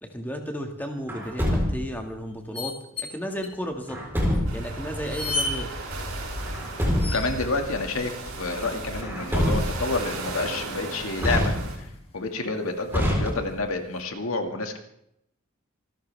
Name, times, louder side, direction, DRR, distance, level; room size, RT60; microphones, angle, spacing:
voice 1, 0.0-4.0 4.5-5.7, equal, 10° left, 3 dB, 1.9 m, -34 dB
sound 1, 0.8-1.1 2.5-3.1 3.4-3.5 4.3-4.4 5.0-5.6 7.0-7.5 9.5-10.0 11.6-11.7 11.9-12.0 12.7-13.5 13.9-14.0, left 2 dB, 30° left, 2.1 m, -33 dB
Truck, 1.1-2.0 3.9-4.7 6.4-7.4 9.0-10.0 11.2-12.0 12.9-13.8, equal, 10° right, 4.0 m, -26 dB
sound 2, 4.5-11.8, right 2 dB, 90° right, 6.3 m, -35 dB
voice 2, 7.1-11.5 12.1-14.8, left 3 dB, 85° left, 4 dB, 2.1 m, -29 dB
26.0 x 13.0 x 3.5 m, 0.76 s
head